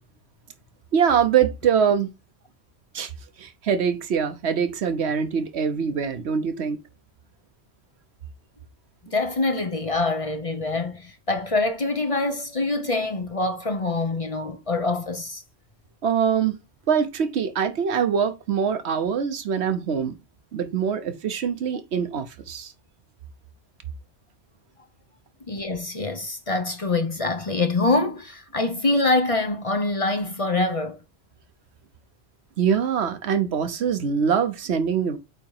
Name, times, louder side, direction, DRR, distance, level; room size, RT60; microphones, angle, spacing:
voice 1, 0.9-2.1 2.9-3.1 3.4-6.8 16.0-16.6 16.9-20.2 20.5-22.7 32.6-35.2, right 7 dB, 75° right, 1.1 m, -23 dB
voice 2, 9.1-15.4 25.5-31.0, left 2 dB, 35° left, 0.7 m, -25 dB
8.2 x 2.9 x 4.7 m
omnidirectional pair, 1.1 m